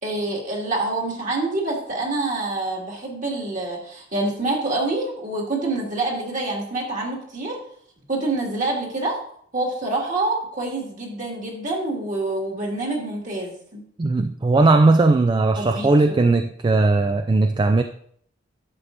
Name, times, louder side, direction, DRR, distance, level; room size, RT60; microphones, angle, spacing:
voice 1, 0.0-7.6 8.1-9.2 9.5-13.8 15.6-16.2, right 2 dB, 45° right, -1 dB, 2.1 m, -26 dB
voice 2, 14.0-17.8, right 3 dB, 25° right, 8 dB, 0.3 m, -18 dB
11.0 x 7.3 x 2.6 m, 0.64 s
head